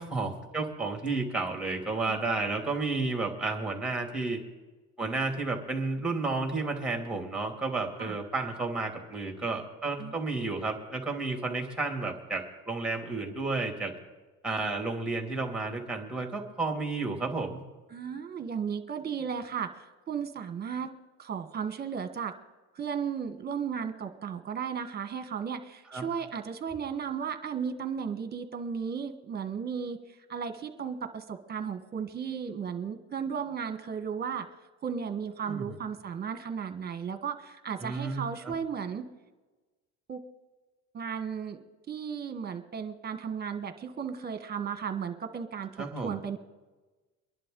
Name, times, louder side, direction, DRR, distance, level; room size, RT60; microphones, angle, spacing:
voice 1, 0.0-4.4 5.0-13.9 14.4-17.6 25.9-26.1 35.4-35.8 37.8-38.5 45.8-46.2, right 3 dB, 5° right, 3 dB, 2.6 m, -32 dB
voice 2, 17.9-20.9 21.2-22.3 22.7-30.0 30.3-34.5 34.8-39.0 40.1-40.2 40.9-41.6 41.9-46.4, right 7 dB, 30° right, 8 dB, 1.4 m, -35 dB
24.5 x 11.0 x 3.9 m, 1.2 s
cardioid pair, 130°, 30 cm